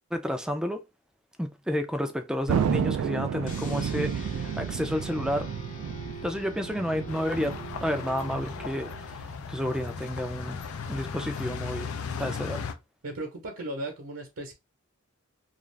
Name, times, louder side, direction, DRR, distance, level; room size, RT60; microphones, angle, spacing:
voice 1, 0.1-0.8 1.4-5.5 6.2-8.9 9.5-10.6 10.9-11.9 12.2-12.6, equal, 5° right, 0.3 m, -30 dB
Thunder, 2.5-9.3, right 8 dB, 90° right, 0.3 m, -32 dB
sound 1, 3.5-9.3, equal, 40° left, 0.7 m, -43 dB
sound 2, 7.1-12.7, left 5 dB, 80° left, 0.5 m, -37 dB
voice 2, 13.0-14.5, right 1 dB, 70° right, 0.8 m, -36 dB
2.4 x 2.4 x 3.2 m
head